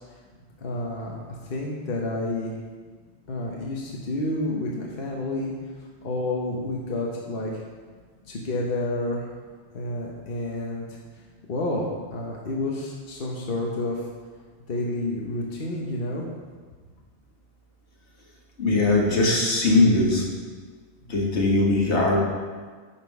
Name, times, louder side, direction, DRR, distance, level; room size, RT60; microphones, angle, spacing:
voice 1, 0.6-1.2 1.4-2.5 3.3-5.5 6.0-7.6 8.3-9.3 9.7-10.8 11.5-14.0 14.7-16.2, left 2 dB, 55° left, -2 dB, 1.3 m, -29 dB
voice 2, 18.6-20.2 21.1-22.2, left 2 dB, 75° left, -2 dB, 1.8 m, -20 dB
9.9 x 6.0 x 4.7 m, 1.5 s
omnidirectional pair, 1.1 m